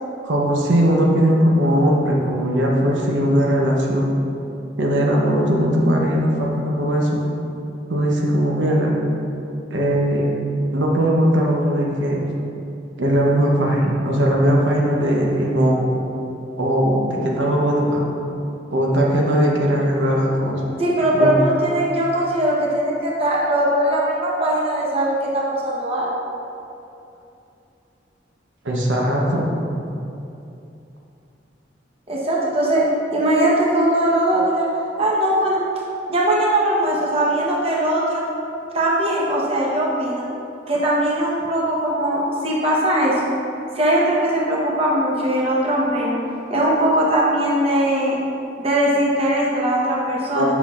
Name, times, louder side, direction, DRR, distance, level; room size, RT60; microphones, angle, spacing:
voice 1, 0.2-4.1 4.8-7.2 7.9-8.9 9.7-10.3 10.7-12.2 13.0-15.9 16.6-18.0 18.7-20.7 21.1-21.3 28.6-29.5 50.3-50.6, equal, 90° right, -2 dB, 0.8 m, -19 dB
voice 2, 20.8-26.1 32.1-32.8 33.1-34.7 35.0-35.6 36.1-38.2 38.7-40.3 40.7-43.3 43.8-46.2 46.5-48.2 48.6-50.5, right 1 dB, 35° right, -5 dB, 1.0 m, -20 dB
7.9 x 5.7 x 2.4 m, 2.7 s
head